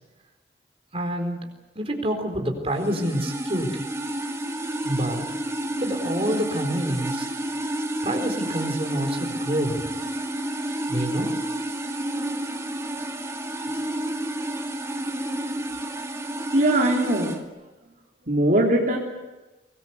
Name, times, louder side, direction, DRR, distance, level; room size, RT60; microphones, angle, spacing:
voice 1, 0.9-1.5 1.7-3.9 4.8-5.2 5.8-7.3 8.0-9.9 10.9-11.4, equal, 35° right, 4 dB, 4.3 m, -27 dB
sound 1, 2.7-17.4, right 1 dB, 15° right, 2.2 m, -30 dB
voice 2, 16.5-17.4 18.3-19.0, right 1 dB, 50° right, -1 dB, 3.7 m, -20 dB
24.0 x 20.5 x 8.2 m, 1.1 s
head